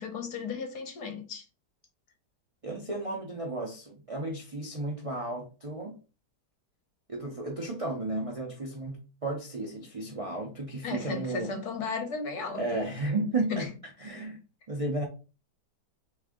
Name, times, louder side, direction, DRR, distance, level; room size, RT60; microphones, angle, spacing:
voice 1, 0.0-1.4 10.8-12.8 13.5-13.7, left 4 dB, 70° left, 1.4 m, -35 dB
voice 2, 2.6-6.0 7.1-11.5 12.5-13.7 14.0-14.4 14.7-15.1, right 2 dB, 50° right, 0.4 m, -33 dB
3.5 x 3.2 x 3.6 m
omnidirectional pair, 1.8 m